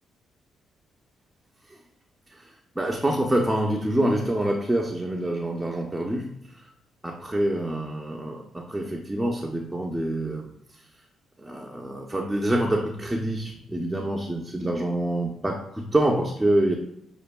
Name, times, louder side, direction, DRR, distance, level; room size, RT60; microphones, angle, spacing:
voice 1, 2.8-6.6 7.0-10.5 11.4-16.8, right 1 dB, 10° right, 0 dB, 0.4 m, -26 dB
6.4 x 2.4 x 2.2 m, 0.79 s
cardioid pair, 90°, 0 cm